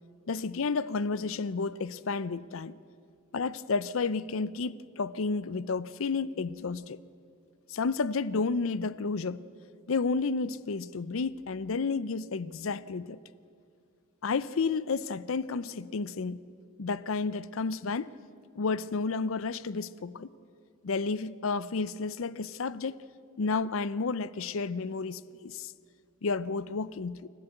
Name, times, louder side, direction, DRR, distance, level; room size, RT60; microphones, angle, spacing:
voice 1, 0.3-2.7 3.3-7.0 7.7-9.4 9.9-13.2 14.2-16.4 16.8-18.1 18.6-20.3 20.8-23.0 23.4-25.7 26.2-27.3, left 4 dB, 65° left, 0.5 m, -31 dB
28.5 x 13.0 x 7.9 m
head